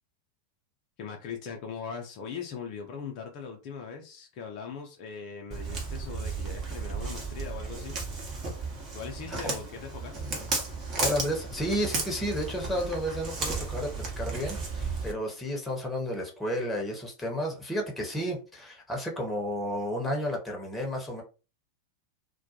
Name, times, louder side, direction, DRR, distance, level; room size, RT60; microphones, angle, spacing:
voice 1, 1.0-8.3 8.9-10.3, left 6 dB, 40° left, 0.5 m, -40 dB
Walk footsteps, 5.5-15.1, right 4 dB, 30° right, 0.9 m, -34 dB
voice 2, 11.0-21.2, equal, 10° left, 0.8 m, -32 dB
2.2 x 2.2 x 2.8 m
figure-of-eight pair, 90°, 0 cm